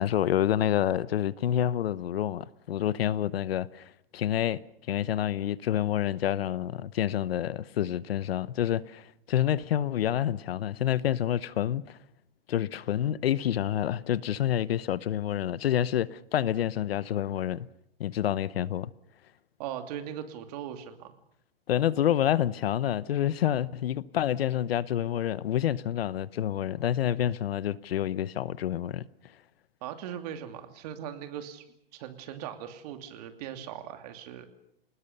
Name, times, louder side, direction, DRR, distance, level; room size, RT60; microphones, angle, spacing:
voice 1, 0.0-4.6 4.9-12.0 12.5-17.7 18.0-18.9 21.7-29.1, left 11 dB, 75° left, 1.0 m, -28 dB
voice 2, 19.6-21.1 29.8-31.6 31.9-34.5, right 10 dB, 40° right, 2.8 m, -39 dB
28.0 x 20.0 x 6.8 m
hypercardioid pair, 160°, 30 cm